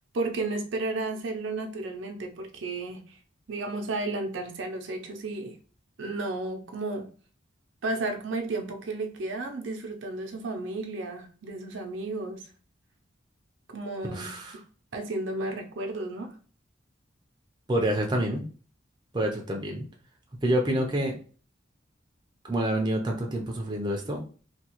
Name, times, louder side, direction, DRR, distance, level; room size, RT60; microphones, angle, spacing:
voice 1, 0.1-3.1 3.5-5.6 6.0-7.1 7.8-12.5 13.7-14.4 14.9-16.4, right 2 dB, 75° right, 0.6 m, -33 dB
voice 2, 14.1-14.6 17.7-18.4 19.1-19.8 20.4-21.2 22.4-24.2, right 1 dB, 25° right, 0.5 m, -27 dB
3.5 x 2.3 x 2.9 m
head